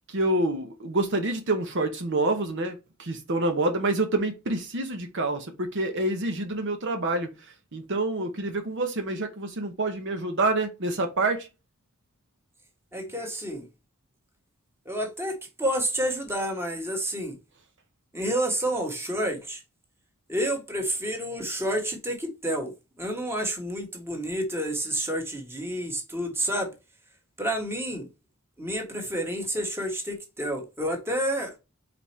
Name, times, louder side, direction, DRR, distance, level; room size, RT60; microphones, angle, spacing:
voice 1, 0.1-11.5, right 2 dB, 55° right, 0.9 m, -27 dB
voice 2, 12.9-13.7 14.8-17.4 18.1-19.6 20.3-26.7 27.4-28.1 28.6-31.6, right 1 dB, 10° right, 1.6 m, -29 dB
5.3 x 4.3 x 4.4 m
head